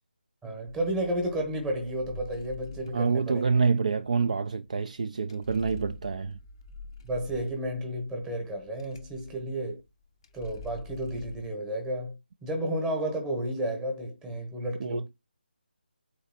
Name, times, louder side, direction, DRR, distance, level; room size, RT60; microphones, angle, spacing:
voice 1, 0.4-3.4 7.0-9.8 10.3-15.1, right 1 dB, 5° right, 1.0 m, -32 dB
sound 1, 0.7-11.5, left 3 dB, 25° left, 0.5 m, -47 dB
voice 2, 2.9-6.4 14.8-15.1, right 5 dB, 45° right, 0.4 m, -27 dB
4.1 x 3.1 x 4.1 m
figure-of-eight pair, 155°, 6 cm